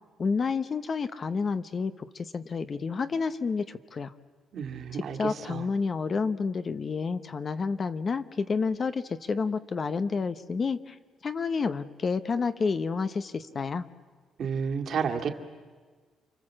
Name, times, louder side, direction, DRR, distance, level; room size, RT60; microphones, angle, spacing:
voice 1, 0.2-4.1 4.9-11.0 11.2-13.9, left 5 dB, 35° left, 11 dB, 0.8 m, -30 dB
voice 2, 4.5-5.6 14.4-15.3, right 6 dB, 55° right, 4 dB, 2.2 m, -31 dB
29.5 x 25.0 x 7.6 m, 1.5 s
cardioid pair, 145°, 0 cm